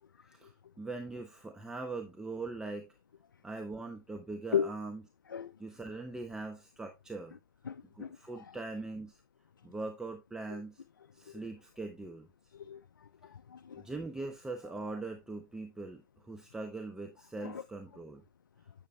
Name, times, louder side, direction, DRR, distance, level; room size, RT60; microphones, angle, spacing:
voice 1, 0.3-2.9 3.4-5.0 5.6-7.4 8.0-9.2 9.6-10.8 11.1-12.3 13.8-18.2, right 3 dB, 5° right, 0.7 m, -41 dB
voice 2, 7.7-8.5 10.5-10.6 11.3-11.4 12.5-13.9 17.4-17.6, left 8 dB, 85° left, 0.4 m, -37 dB
9.5 x 6.7 x 2.2 m
hypercardioid pair, 120°, 11 cm